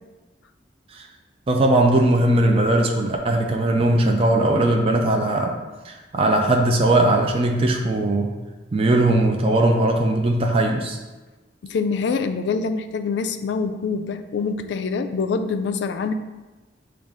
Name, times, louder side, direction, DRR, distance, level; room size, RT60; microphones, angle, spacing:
voice 1, 1.5-5.6 5.9-8.3 8.7-11.0, right 1 dB, 30° right, 2 dB, 0.4 m, -19 dB
voice 2, 11.6-16.1, left 5 dB, 70° left, 8 dB, 0.3 m, -25 dB
6.4 x 2.4 x 3.5 m, 1.2 s
head